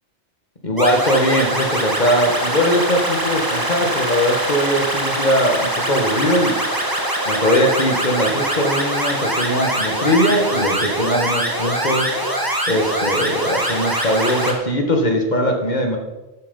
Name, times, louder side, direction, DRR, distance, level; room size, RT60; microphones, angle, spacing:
voice 1, 0.6-6.6 7.3-12.2 12.7-16.0, equal, 40° left, 3 dB, 2.0 m, -20 dB
sound 1, 0.8-14.5, right 1 dB, 20° right, 1.9 m, -23 dB
12.0 x 9.5 x 5.5 m, 1.1 s
omnidirectional pair, 1.1 m